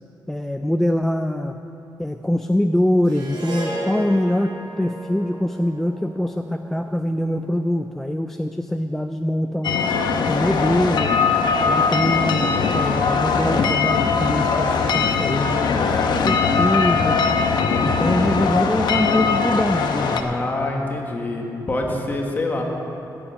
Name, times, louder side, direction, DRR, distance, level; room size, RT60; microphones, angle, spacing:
voice 1, 0.3-1.6 2.0-9.8 10.3-11.1 11.6-17.2 17.8-20.3, left 1 dB, 5° left, 6 dB, 0.3 m, -23 dB
Harp, 3.0-7.5, right 1 dB, 75° right, 3.8 m, -34 dB
sound 1, 9.6-20.2, left 5 dB, 70° left, 0.9 m, -20 dB
voice 2, 20.2-22.6, left 2 dB, 25° left, 1 dB, 1.5 m, -25 dB
13.5 x 7.1 x 8.7 m, 2.9 s
wide cardioid pair, 175°, 8 cm